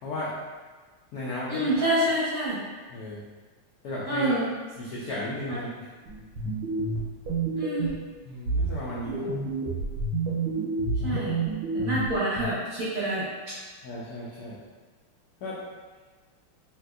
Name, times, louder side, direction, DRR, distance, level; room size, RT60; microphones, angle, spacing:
voice 1, 0.0-0.4 1.1-1.9 2.9-3.2 3.8-4.4 4.8-5.9 8.2-9.3 11.0-11.2 13.8-14.6 15.4-15.6, left 1 dB, 80° left, -8 dB, 0.8 m, -35 dB
voice 2, 1.5-2.6 4.1-4.5 5.5-5.6 7.6-7.9 9.2-9.3 11.0-11.4 11.7-13.3, right 1 dB, 60° right, -9 dB, 0.9 m, -27 dB
sound 1, 6.1-8.1 8.5-12.5, right 3 dB, 90° right, 1.5 m, -29 dB
3.4 x 2.9 x 2.3 m, 1.3 s
omnidirectional pair, 2.3 m